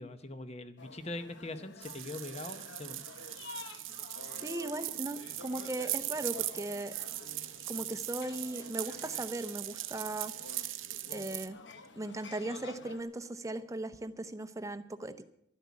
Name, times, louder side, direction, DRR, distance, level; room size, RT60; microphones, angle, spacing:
voice 1, 0.0-3.0, left 2 dB, 30° left, 10 dB, 0.9 m, -42 dB
sound 1, 0.8-13.0, left 3 dB, 60° left, 1.1 m, -50 dB
sound 2, 1.8-11.5, right 15 dB, 75° right, 0.8 m, -40 dB
voice 2, 4.2-6.9 7.7-10.3 11.1-11.6 11.9-15.1, right 2 dB, 15° right, 10 dB, 0.7 m, -38 dB
12.5 x 10.0 x 8.4 m, 0.75 s
head